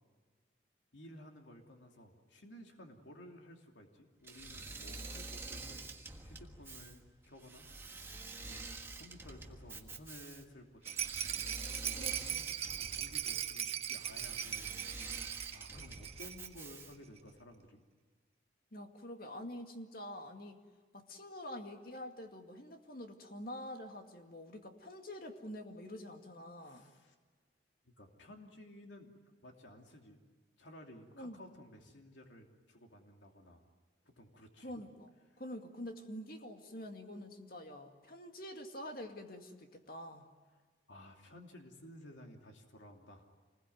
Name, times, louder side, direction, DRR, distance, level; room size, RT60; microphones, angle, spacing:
voice 1, 0.9-7.7 8.4-12.1 12.7-17.8 26.6-27.1 27.8-29.1 29.4-30.2 30.6-33.6 34.0-34.7 35.3-35.4 40.9-43.3, left 1 dB, 80° left, 2 dB, 2.9 m, -55 dB
Engine / Mechanisms, 4.2-17.1, right 3 dB, 15° right, 1.5 m, -47 dB
Rattle, 10.8-16.5 16.8-16.9 17.2-17.3, right 10 dB, 35° right, 1.1 m, -39 dB
voice 2, 11.9-12.6 18.7-20.6 20.9-26.9 31.2-31.4 34.6-40.3, left 1 dB, 50° left, 5 dB, 2.2 m, -47 dB
27.5 x 21.0 x 9.4 m, 1.5 s
head